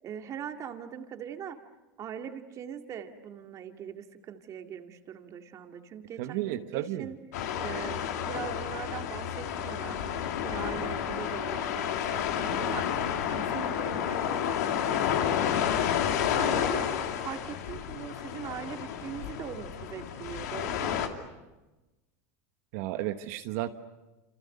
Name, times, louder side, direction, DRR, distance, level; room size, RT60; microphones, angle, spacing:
voice 1, 0.0-1.6 2.0-7.2 7.6-12.9 13.3-15.7 16.3-21.0, right 8 dB, 40° right, 5 dB, 2.2 m, -41 dB
voice 2, 6.2-7.1 22.7-23.7, right 14 dB, 65° right, 8 dB, 1.3 m, -33 dB
sound 1, 7.3-21.1, left 9 dB, 80° left, 2.8 m, -30 dB
28.5 x 28.0 x 6.7 m, 1.1 s
supercardioid pair, 115°, 9 cm